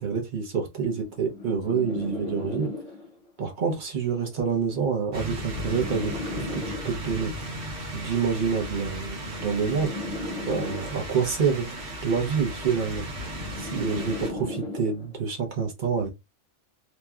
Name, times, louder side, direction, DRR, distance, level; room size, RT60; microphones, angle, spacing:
voice 1, 0.0-2.7 3.4-7.3 7.9-9.9 10.5-13.1 13.6-16.1, right 6 dB, 45° right, 0.8 m, -27 dB
sound 1, 0.9-3.3 4.3-7.3 8.3-11.3 12.3-15.3, left 2 dB, 40° left, 0.6 m, -37 dB
sound 2, 5.1-14.3, equal, 75° right, 1.3 m, -36 dB
2.9 x 2.2 x 2.3 m
omnidirectional pair, 1.2 m